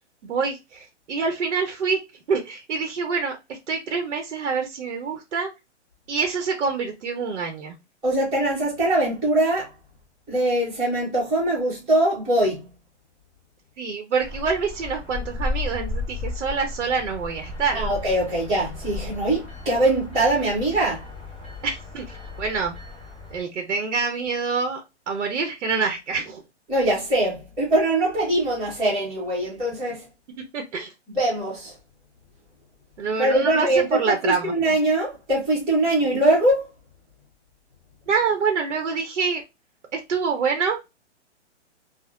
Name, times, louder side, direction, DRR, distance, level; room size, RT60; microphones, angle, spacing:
voice 1, 0.2-2.0 2.3-5.5 6.1-7.8 13.8-17.8 21.6-22.8 23.3-26.4 30.5-30.9 33.0-34.5 38.1-39.4 39.9-40.8, right 5 dB, 90° right, 0.7 m, -26 dB
voice 2, 8.0-9.7 10.3-12.7 17.7-21.1 26.7-30.1 31.1-31.7 33.2-36.7, right 1 dB, 10° right, 0.8 m, -22 dB
sound 1, 14.2-23.4, left 3 dB, 5° left, 0.4 m, -34 dB
3.5 x 2.0 x 2.3 m
hypercardioid pair, 160°, 35 cm